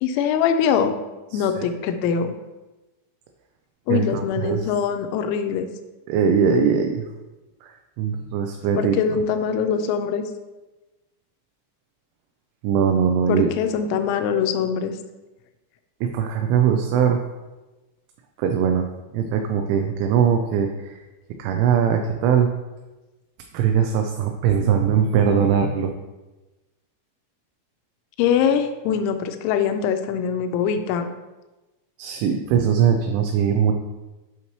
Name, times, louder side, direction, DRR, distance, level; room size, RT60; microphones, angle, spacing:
voice 1, 0.0-1.0 1.3-2.3 3.9-5.7 8.8-10.2 13.3-14.9 28.2-31.1, left 7 dB, 85° left, 7 dB, 2.8 m, -23 dB
voice 2, 1.3-1.7 3.9-4.7 6.1-7.1 7.6-9.0 12.6-13.5 16.0-17.2 18.4-18.8 19.1-21.0 21.4-22.5 23.5-25.9 32.0-33.7, right 7 dB, 85° right, 4 dB, 3.0 m, -21 dB
7.9 x 5.6 x 3.0 m, 1.1 s
omnidirectional pair, 5.6 m